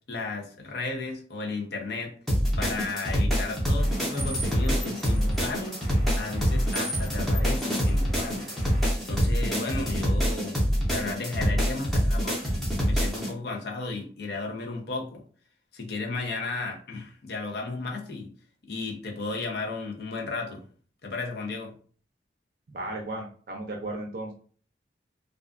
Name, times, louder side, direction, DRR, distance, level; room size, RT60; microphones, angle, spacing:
voice 1, 0.1-2.1 2.6-5.8 6.2-8.5 9.0-10.6 10.9-15.2 15.7-18.3 18.6-20.6 21.0-21.7, left 3 dB, 65° left, 1 dB, 0.6 m, -34 dB
sound 1, 2.3-13.3, equal, ahead, 0.6 m, -25 dB
sound 2, 3.8-8.9, right 1 dB, 40° left, 1.3 m, -41 dB
voice 2, 22.7-24.3, right 2 dB, 55° right, 1 dB, 0.5 m, -35 dB
2.4 x 2.3 x 2.4 m, 0.43 s
head